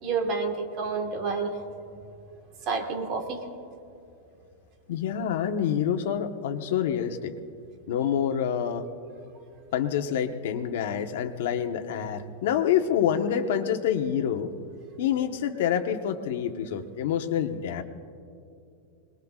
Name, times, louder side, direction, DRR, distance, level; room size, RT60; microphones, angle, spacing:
voice 1, 0.0-1.6 2.6-3.4, right 4 dB, 35° right, 4 dB, 1.6 m, -29 dB
voice 2, 4.9-7.3 7.9-8.9 9.7-14.5 15.0-17.8, left 9 dB, 70° left, 5 dB, 1.2 m, -27 dB
26.0 x 21.0 x 2.5 m, 2.6 s
supercardioid pair, 165°, 0 cm